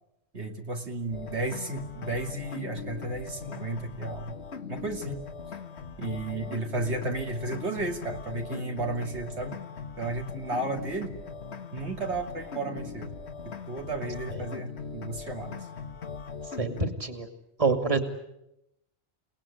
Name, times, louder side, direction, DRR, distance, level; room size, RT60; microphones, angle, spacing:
voice 1, 0.3-4.4 4.7-5.2 6.0-9.6 10.0-11.1 11.7-13.1 13.4-15.7, right 2 dB, 85° right, 3 dB, 2.9 m, -33 dB
sound 1, 1.1-16.9, left 5 dB, 80° left, 1.7 m, -40 dB
voice 2, 16.6-17.3 17.6-18.0, right 4 dB, 30° right, 7 dB, 2.4 m, -26 dB
29.5 x 19.0 x 9.9 m, 0.86 s
omnidirectional pair, 1.1 m